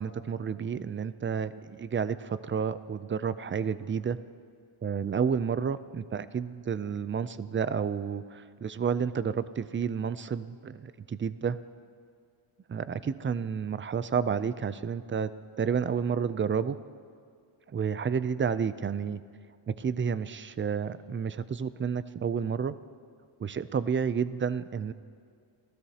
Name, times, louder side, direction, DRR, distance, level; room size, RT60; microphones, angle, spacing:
voice 1, 0.0-4.2 4.8-11.6 12.7-15.3 15.6-16.8 17.7-19.2 19.7-22.8 23.4-24.9, right 6 dB, 30° right, 14 dB, 0.3 m, -30 dB
28.5 x 15.5 x 2.8 m, 2.2 s
wide cardioid pair, 135°, 49 cm